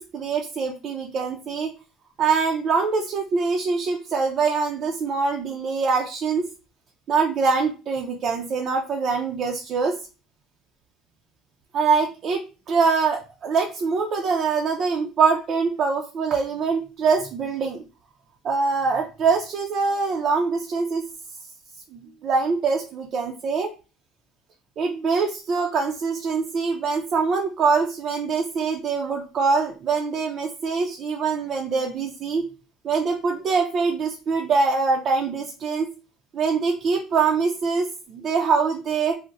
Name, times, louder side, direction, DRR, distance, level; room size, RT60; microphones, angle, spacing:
voice 1, 0.0-1.7 2.2-6.4 7.1-10.0 11.7-17.8 18.4-21.0 21.9-23.7 24.8-32.4 32.8-35.9 36.3-39.1, right 4 dB, 45° right, 1 dB, 0.4 m, -24 dB
2.5 x 2.0 x 3.9 m, 0.32 s
cardioid pair, 120°, 0 cm